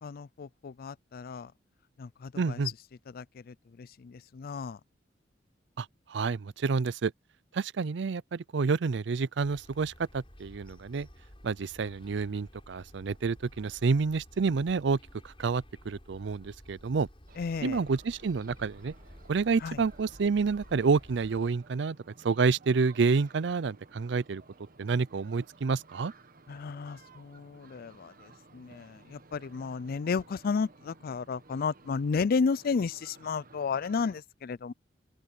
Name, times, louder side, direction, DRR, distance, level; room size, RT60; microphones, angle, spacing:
voice 1, 0.0-1.5 2.0-2.6 3.1-4.8 17.4-17.8 19.6-19.8 26.5-34.7, left 5 dB, 55° left, 0.4 m, -33 dB
voice 2, 2.4-2.7 5.8-7.1 7.5-11.1 11.4-15.0 15.2-17.1 17.6-18.9 19.3-22.0 22.2-24.4 24.8-26.1, right 4 dB, 65° right, 0.5 m, -29 dB
sound 1, 9.4-21.5, equal, 30° left, 5.4 m, -53 dB
sound 2, 17.3-34.2, right 3 dB, 50° right, 1.3 m, -56 dB
open air
head